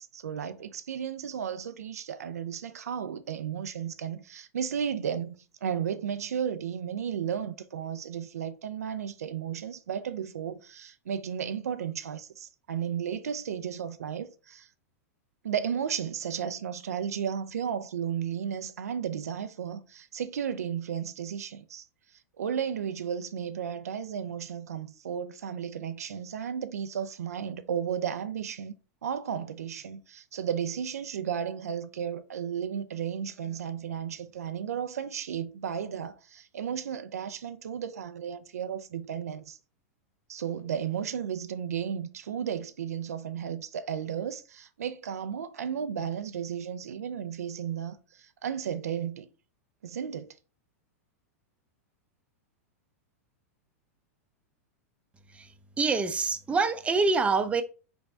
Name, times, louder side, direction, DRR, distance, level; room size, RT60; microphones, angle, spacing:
voice 1, 0.0-5.4 5.6-14.7 15.4-21.9 22.4-28.7 29.0-39.6 40.3-49.3 49.8-50.3, right 8 dB, 85° right, 0.4 m, -34 dB
voice 2, 55.3-57.6, right 4 dB, 15° right, 0.5 m, -26 dB
4.0 x 3.5 x 3.2 m
hypercardioid pair, 110°, 8 cm